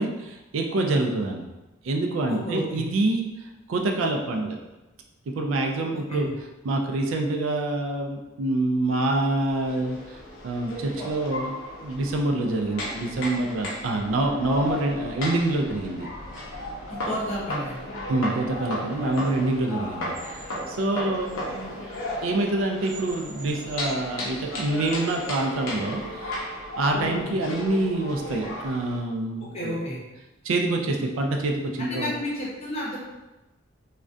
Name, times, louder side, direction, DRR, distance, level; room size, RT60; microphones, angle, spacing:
voice 1, 0.0-1.5 1.8-4.6 5.4-6.3 6.6-10.2 10.4-11.5 11.8-16.1 18.1-21.7 22.2-26.5 26.8-29.8 30.4-32.1, right 2 dB, 75° right, 3 dB, 0.3 m, -26 dB
voice 2, 2.3-2.9 5.9-6.3 16.9-17.9 29.5-30.0 31.8-33.0, left 1 dB, 30° left, -6 dB, 0.7 m, -31 dB
sound 1, 9.5-29.0, left 1 dB, 85° left, 0.6 m, -35 dB
sound 2, 18.5-26.3, right 2 dB, 35° right, 0.9 m, -47 dB
2.3 x 2.1 x 2.5 m, 1.0 s
head